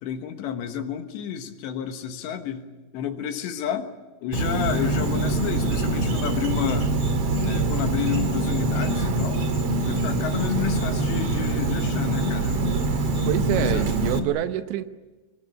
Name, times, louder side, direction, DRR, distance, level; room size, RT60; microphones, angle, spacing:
voice 1, 0.0-3.9 4.2-6.9 7.4-9.5 9.8-12.6 13.6-13.9, left 8 dB, 75° left, 7 dB, 3.4 m, -31 dB
Insect, 4.3-14.2, right 2 dB, 50° right, 1.9 m, -24 dB
voice 2, 13.3-14.8, right 12 dB, 75° right, 10 dB, 3.0 m, -26 dB
26.0 x 21.0 x 8.8 m, 1.2 s
omnidirectional pair, 5.4 m